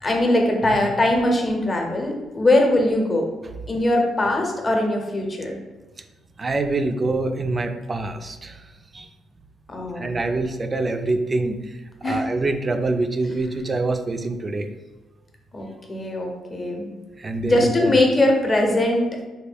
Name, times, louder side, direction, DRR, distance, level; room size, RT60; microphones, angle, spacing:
voice 1, 0.0-3.2 3.7-5.6 9.7-10.1 12.0-12.3 15.5-16.9 17.4-19.0, left 1 dB, 30° left, 1 dB, 0.7 m, -21 dB
voice 2, 6.4-9.1 10.0-11.8 12.0-14.7 17.2-18.0, right 2 dB, 30° right, 7 dB, 0.3 m, -25 dB
3.4 x 2.2 x 3.4 m, 1.2 s
cardioid pair, 90°, 0 cm